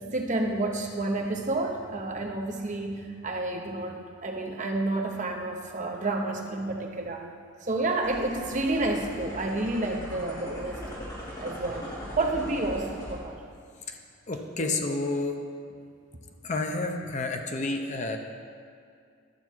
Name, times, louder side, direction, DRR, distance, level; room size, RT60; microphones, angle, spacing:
voice 1, 0.0-7.3 7.6-11.1 11.4-11.9 12.2-13.4 14.6-14.7, right 2 dB, 40° right, 2 dB, 0.9 m, -30 dB
sound 1, 8.0-13.2, equal, 20° left, 2.7 m, -39 dB
voice 2, 14.3-15.4 16.4-18.2, left 2 dB, 35° left, 4 dB, 0.7 m, -30 dB
11.5 x 7.0 x 4.6 m, 2.3 s
head